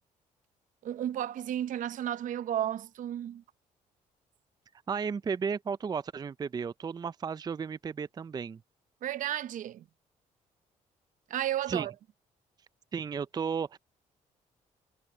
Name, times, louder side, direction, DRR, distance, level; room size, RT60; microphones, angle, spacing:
voice 1, 0.8-3.4 9.0-9.9 11.3-11.9, right 11 dB, 70° right, 0.8 m, -33 dB
voice 2, 4.9-8.6 11.7-11.9 12.9-13.8, right 6 dB, 30° right, 0.4 m, -34 dB
cardioid pair, 80°, 14 cm